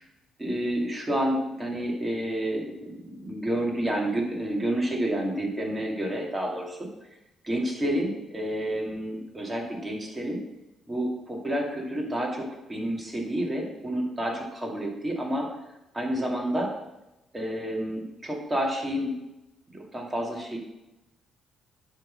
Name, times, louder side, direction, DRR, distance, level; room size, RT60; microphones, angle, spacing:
voice 1, 0.4-6.8 7.4-10.4 10.9-15.5 15.9-16.7 17.3-19.1 19.7-20.6, right 1 dB, 15° right, -1 dB, 2.4 m, -29 dB
10.0 x 3.8 x 6.4 m, 0.96 s
cardioid pair, 90°, 0 cm